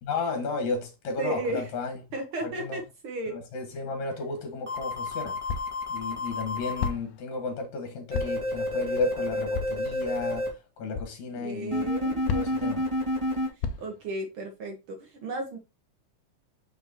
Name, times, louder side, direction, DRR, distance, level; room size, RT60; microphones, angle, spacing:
voice 1, 0.0-2.0 2.4-2.8 3.3-5.4 5.9-10.5 10.8-11.9 12.3-12.8, left 4 dB, 65° left, 2.9 m, -33 dB
voice 2, 1.2-1.7 2.1-3.4 11.4-12.2 13.8-15.6, right 2 dB, 60° right, 1.4 m, -34 dB
sound 1, 4.4-4.5 5.5-5.8 6.8-7.2 8.1-8.5 9.5-9.9 10.9-11.2 12.3-12.7 13.6-14.0, left 6 dB, 90° left, 2.2 m, -32 dB
sound 2, 4.7-6.9 8.1-10.5 11.7-13.5, left 1 dB, 10° right, 1.6 m, -29 dB
6.1 x 5.8 x 2.9 m
omnidirectional pair, 3.6 m